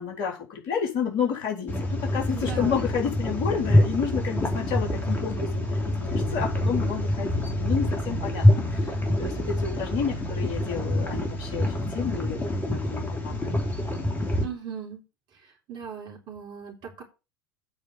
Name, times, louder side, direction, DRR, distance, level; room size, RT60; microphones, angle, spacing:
voice 1, 0.0-12.4 12.7-13.3, left 7 dB, 50° left, 1 dB, 4.0 m, -30 dB
sound 1, 1.7-14.4, left 1 dB, 15° left, 3.1 m, -26 dB
voice 2, 2.3-2.8 14.4-15.0 15.7-17.0, right 7 dB, 40° right, 1 dB, 3.6 m, -38 dB
8.7 x 5.3 x 7.3 m, 0.28 s
figure-of-eight pair, 75°, 11 cm